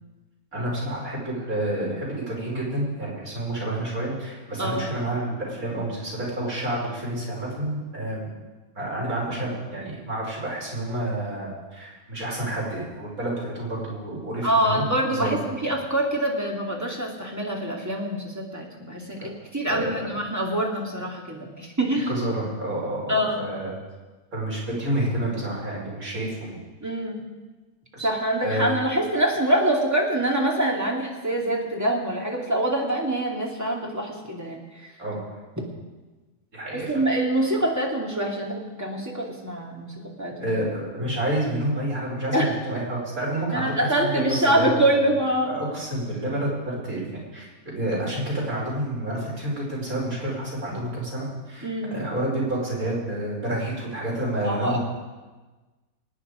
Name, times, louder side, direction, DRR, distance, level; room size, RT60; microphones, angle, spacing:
voice 1, 0.5-8.3 8.8-14.8 15.1-15.4 19.1-19.3 19.7-19.9 22.1-23.7 24.3-26.6 27.9-28.1 28.4-28.7 35.0-35.2 36.5-37.0 40.4-44.1 44.4-45.1 45.4-47.0 47.3-54.8, right 1 dB, 80° right, -5 dB, 5.6 m, -29 dB
voice 2, 4.6-4.9 14.4-22.1 23.1-23.5 26.8-27.2 28.0-34.9 36.7-40.6 42.3-42.6 43.5-45.6 51.6-52.0 54.4-54.8, right 1 dB, 10° right, -1 dB, 2.5 m, -25 dB
24.5 x 9.4 x 5.1 m, 1.2 s
omnidirectional pair, 1.5 m